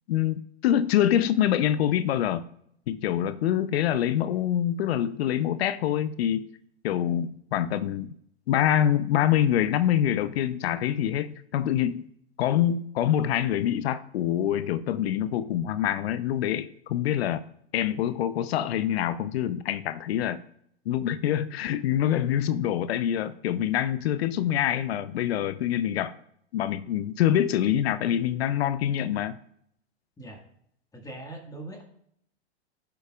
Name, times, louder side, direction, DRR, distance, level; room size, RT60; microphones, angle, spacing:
voice 1, 0.1-2.4 2.9-6.5 6.8-8.1 8.5-12.1 12.4-17.4 17.7-20.4 20.9-26.1 26.5-29.4, left 11 dB, 70° left, 13 dB, 0.7 m, -25 dB
voice 2, 30.9-31.8, right 2 dB, 10° left, 1 dB, 1.7 m, -41 dB
15.0 x 6.9 x 2.4 m, 0.68 s
hypercardioid pair, 115°, 32 cm